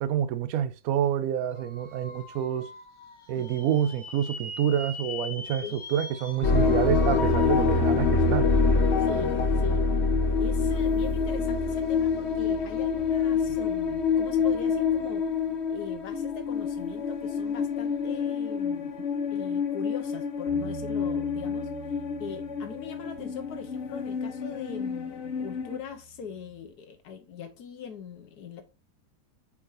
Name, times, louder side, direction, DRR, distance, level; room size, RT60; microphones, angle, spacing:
voice 1, 0.0-2.7 3.3-8.5, right 10 dB, 70° right, 1.0 m, -28 dB
sound 1, 1.5-7.2, left 3 dB, 35° left, 0.5 m, -41 dB
sound 2, 6.4-25.8, left 4 dB, 50° left, 1.0 m, -26 dB
voice 2, 9.0-9.8 10.4-19.0 19.3-21.7 22.2-28.6, left 7 dB, 80° left, 1.4 m, -42 dB
Bass guitar, 20.5-26.7, right 13 dB, 15° right, 1.3 m, -46 dB
8.5 x 4.8 x 2.6 m
omnidirectional pair, 1.7 m